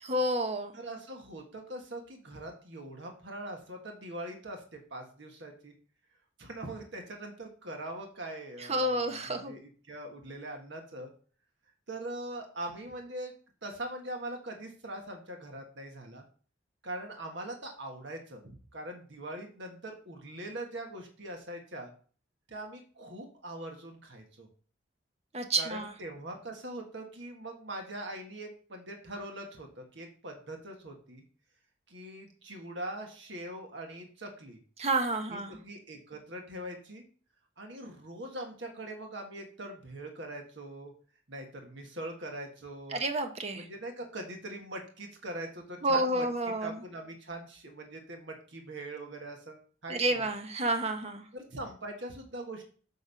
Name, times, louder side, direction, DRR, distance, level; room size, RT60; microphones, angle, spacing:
voice 1, 0.0-0.7 8.7-9.5 25.3-25.9 34.8-35.6 42.9-43.6 45.8-46.7 49.9-51.2, right 1 dB, 30° right, 6 dB, 0.9 m, -29 dB
voice 2, 0.7-5.7 6.4-11.1 11.9-13.3 13.6-16.3 16.8-21.9 22.5-24.5 25.5-31.2 31.9-34.6 35.3-37.1 37.6-40.9 41.3-43.0 43.6-46.3 46.6-50.3 51.3-52.6, right 1 dB, 60° right, 3 dB, 1.6 m, -42 dB
8.2 x 3.6 x 5.7 m, 0.41 s
head